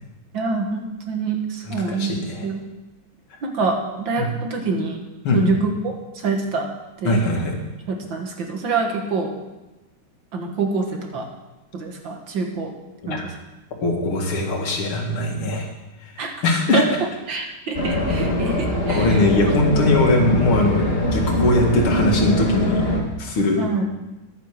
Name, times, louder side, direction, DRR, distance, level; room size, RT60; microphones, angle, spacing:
voice 1, 0.3-2.1 2.4-2.6 3.4-5.0 5.3-6.7 7.0-7.2 7.9-9.3 10.3-11.3 11.7-12.7 13.1-13.2 16.2-16.3 16.7-16.9 17.3-18.6 18.9-19.3 23.6-23.9, right 4 dB, 65° right, 2 dB, 2.3 m, -25 dB
voice 2, 1.6-2.5 4.2-4.3 5.2-5.4 7.0-7.6 13.0-13.3 13.8-15.7 16.0-16.8 18.9-22.9 23.2-23.7, left 2 dB, 85° left, 1 dB, 2.8 m, -21 dB
sound 1, 17.7-23.0, left 1 dB, 30° left, 1.8 m, -22 dB
11.0 x 9.2 x 6.6 m, 1.0 s
omnidirectional pair, 2.3 m